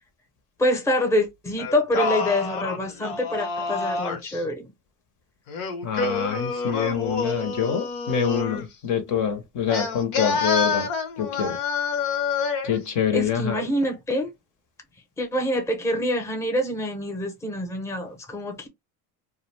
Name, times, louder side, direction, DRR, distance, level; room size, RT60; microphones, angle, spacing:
voice 1, 0.6-4.7 13.1-14.3 15.2-18.7, equal, 5° left, 0.7 m, -26 dB
Singing, 1.6-4.4 5.5-8.7 9.7-12.8, left 4 dB, 80° left, 1.0 m, -28 dB
voice 2, 5.8-10.9 11.2-11.6 12.6-13.6, left 7 dB, 50° left, 0.8 m, -26 dB
2.3 x 2.2 x 3.2 m
supercardioid pair, 105°, 40 cm